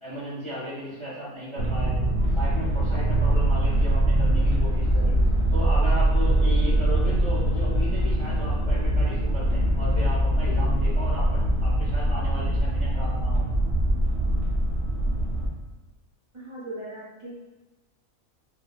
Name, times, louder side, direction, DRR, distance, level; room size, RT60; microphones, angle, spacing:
voice 1, 0.0-1.9 2.3-5.1 5.5-13.5, equal, 30° left, -8 dB, 0.5 m, -35 dB
sound 1, 1.6-15.5, right 1 dB, 60° right, 0.8 m, -23 dB
voice 2, 16.3-17.5, right 1 dB, 40° right, -11 dB, 0.4 m, -39 dB
2.6 x 2.1 x 2.3 m, 1.1 s
omnidirectional pair, 1.5 m